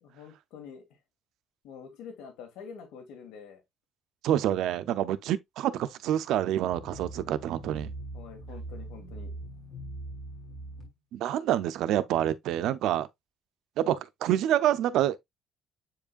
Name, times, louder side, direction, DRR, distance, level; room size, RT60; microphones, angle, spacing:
voice 1, 0.0-0.8 1.6-3.6 8.1-9.3, left 6 dB, 90° left, 2.0 m, -46 dB
voice 2, 4.2-7.9 11.1-13.1 13.8-15.2, right 11 dB, 75° right, 0.6 m, -27 dB
sound 1, 6.7-10.9, right 2 dB, 25° left, 3.6 m, -41 dB
7.7 x 4.9 x 2.5 m
cardioid pair, 130°, 0 cm